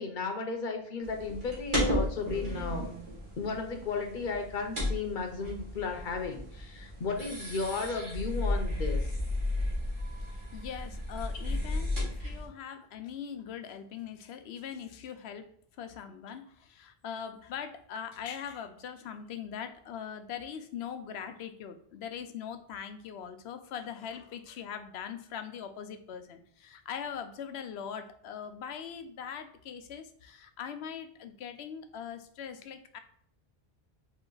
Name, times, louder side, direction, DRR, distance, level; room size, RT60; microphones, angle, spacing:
voice 1, 0.0-2.9 3.4-9.1, left 4 dB, 55° left, 4 dB, 0.8 m, -34 dB
sound 1, 1.0-12.5, left 1 dB, 50° right, 1.6 m, -34 dB
voice 2, 10.2-15.5 15.8-33.0, left 8 dB, 85° left, 8 dB, 0.8 m, -41 dB
4.2 x 2.9 x 3.8 m, 0.64 s
omnidirectional pair, 1.0 m